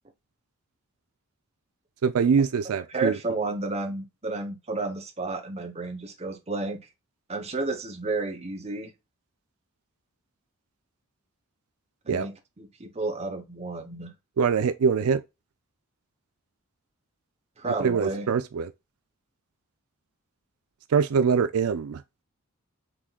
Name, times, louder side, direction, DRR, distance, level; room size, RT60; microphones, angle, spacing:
voice 1, 2.0-3.2 12.1-12.3 14.4-15.2 17.8-18.7 20.9-22.0, right 6 dB, 75° right, 0.4 m, -23 dB
voice 2, 2.9-6.8 7.3-8.9 12.0-14.1 17.6-18.3, right 3 dB, 30° right, 0.9 m, -31 dB
5.9 x 3.7 x 2.3 m
head